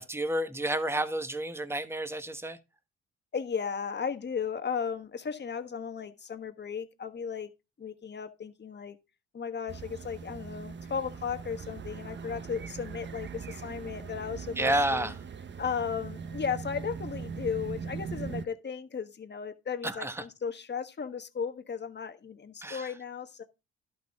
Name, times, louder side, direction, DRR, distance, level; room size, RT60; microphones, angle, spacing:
voice 1, 0.0-2.6 14.6-15.2 19.8-20.2 22.6-22.9, right 1 dB, 10° right, 1.1 m, -30 dB
voice 2, 3.3-7.5 7.8-9.0 9.3-15.1 15.6-23.4, left 6 dB, 35° left, 1.4 m, -35 dB
sound 1, 9.7-18.5, right 5 dB, 40° right, 0.9 m, -40 dB
11.5 x 6.5 x 3.5 m
cardioid pair, 90°, 30 cm